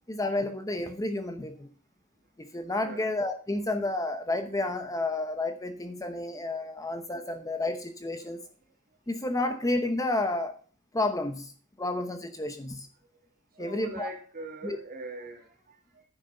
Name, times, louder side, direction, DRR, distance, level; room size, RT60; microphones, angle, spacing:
voice 1, 0.1-1.7 2.4-8.4 9.1-10.6 10.9-11.5 11.8-12.9 13.6-14.1 14.6-14.8, left 2 dB, 15° left, 0.9 m, -31 dB
voice 2, 2.8-3.1 8.3-8.5 13.6-16.0, right 2 dB, 40° right, 2.8 m, -42 dB
10.5 x 6.4 x 6.4 m
head